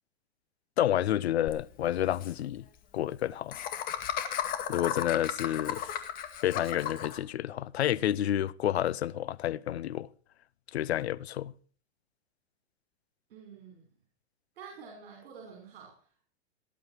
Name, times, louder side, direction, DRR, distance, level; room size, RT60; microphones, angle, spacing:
voice 1, 0.8-2.6 2.9-3.6 4.7-5.8 6.4-10.1 10.7-11.5, left 12 dB, 90° left, 0.8 m, -29 dB
Laughter, 1.5-1.6 1.8-1.9 2.1-2.3 3.5-7.2, left 10 dB, 25° left, 1.9 m, -34 dB
voice 2, 13.3-13.9 14.6-16.3, right 6 dB, 65° right, 5.6 m, -49 dB
18.5 x 11.5 x 4.7 m
hypercardioid pair, 150°, 31 cm